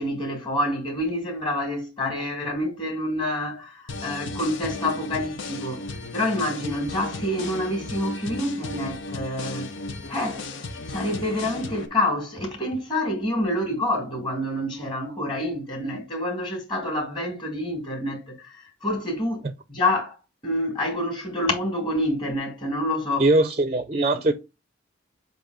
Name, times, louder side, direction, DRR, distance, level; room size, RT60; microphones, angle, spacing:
voice 1, 0.0-5.9 6.1-9.7 10.1-10.5 10.9-20.2 20.4-23.3, left 1 dB, 25° left, 2.4 m, -27 dB
sound 1, 3.9-11.9, left 2 dB, 80° left, 0.9 m, -35 dB
voice 2, 23.2-24.3, right 2 dB, 30° right, 0.5 m, -21 dB
7.7 x 2.7 x 4.9 m
head